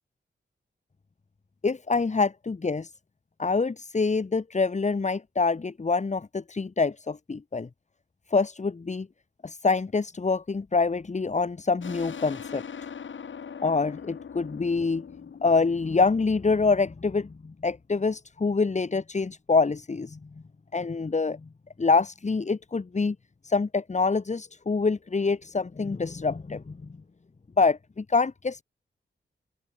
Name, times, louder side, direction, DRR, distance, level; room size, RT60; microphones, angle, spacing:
voice 1, 1.6-2.9 3.4-7.7 8.3-9.1 9.4-12.7 13.6-15.1 15.4-20.2 20.7-21.5 21.8-23.2 23.4-26.8 27.6-28.6, left 4 dB, 35° left, 3.1 m, -26 dB
sound 1, 11.8-17.1, left 7 dB, 75° left, 5.0 m, -41 dB
wide cardioid pair, 120°, 20 cm